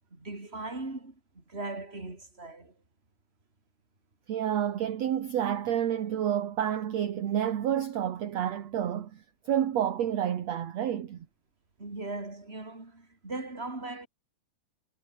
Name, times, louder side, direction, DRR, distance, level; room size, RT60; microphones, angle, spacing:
voice 1, 0.1-2.8 11.8-14.1, right 2 dB, 15° right, 4.8 m, -39 dB
voice 2, 4.3-11.3, right 10 dB, 55° right, 2.5 m, -29 dB
omnidirectional pair, 4.2 m